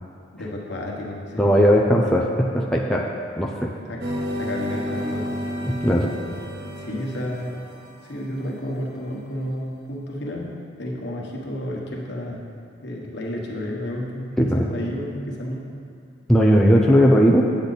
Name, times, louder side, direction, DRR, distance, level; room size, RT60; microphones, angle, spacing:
voice 1, 0.3-1.7 3.8-4.0 4.4-5.4 6.3-6.4 6.8-7.7 8.0-12.5 12.8-15.6, left 1 dB, 60° left, -2 dB, 1.3 m, -31 dB
voice 2, 1.4-3.7 5.6-6.1 14.4-14.7 16.3-17.5, equal, 5° left, -2 dB, 0.5 m, -18 dB
sound 1, 4.0-8.3, equal, 55° right, 0.8 m, -31 dB
8.5 x 8.2 x 4.1 m, 2.3 s
head